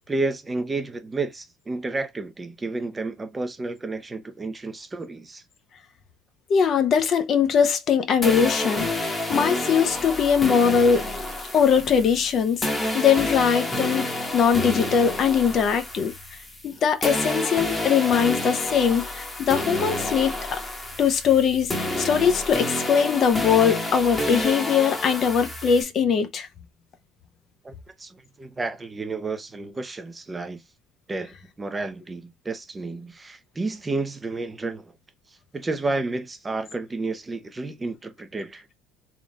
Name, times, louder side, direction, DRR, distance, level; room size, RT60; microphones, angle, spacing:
voice 1, 0.1-5.4 27.6-30.6 31.1-34.9 35.3-38.7, right 3 dB, 15° right, 0.6 m, -31 dB
voice 2, 6.5-11.0 11.5-12.6 12.9-16.1 16.6-20.6 21.0-26.5, left 7 dB, 40° left, 0.7 m, -21 dB
sound 1, 8.2-16.7 17.0-25.8, left 1 dB, 15° left, 1.1 m, -29 dB
3.6 x 2.4 x 4.0 m
cardioid pair, 125°, 0 cm